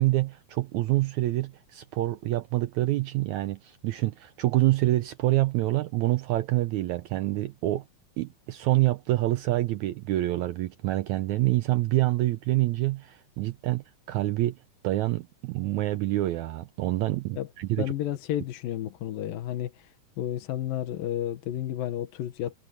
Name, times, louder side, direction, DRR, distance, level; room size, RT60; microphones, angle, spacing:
voice 1, 0.0-7.8 8.2-14.5 14.8-17.9, right 16 dB, 85° right, 1.7 m, -26 dB
voice 2, 17.8-22.6, left 12 dB, 80° left, 3.0 m, -32 dB
omnidirectional pair, 4.0 m